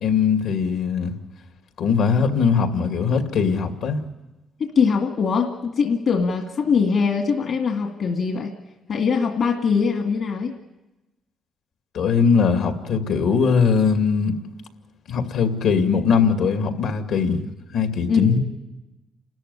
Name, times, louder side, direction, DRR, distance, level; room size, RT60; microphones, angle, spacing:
voice 1, 0.0-1.1 1.8-4.0 11.9-14.3 15.1-17.4 17.7-18.4, left 6 dB, 80° left, 2.4 m, -20 dB
voice 2, 4.6-8.5 8.9-10.5 18.1-18.4, left 5 dB, 60° left, 2.1 m, -22 dB
29.5 x 13.5 x 9.8 m
cardioid pair, 90°, 0 cm